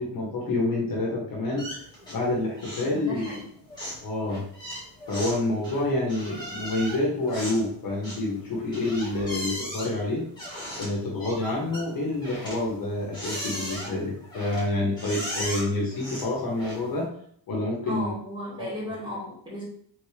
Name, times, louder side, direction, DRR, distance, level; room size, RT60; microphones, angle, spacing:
voice 1, 0.0-1.7 2.1-3.4 4.0-4.4 5.1-10.2 10.8-17.1 17.5-18.1 18.6-18.7, left 2 dB, 50° left, -2 dB, 1.3 m, -28 dB
sound 1, 1.6-2.3 2.6-2.9 3.2-17.0, equal, 10° left, 1.7 m, -38 dB
voice 2, 2.8-3.5 17.9-19.7, equal, 10° right, -8 dB, 1.9 m, -35 dB
3.8 x 3.6 x 3.3 m, 0.62 s
cardioid pair, 170°, 44 cm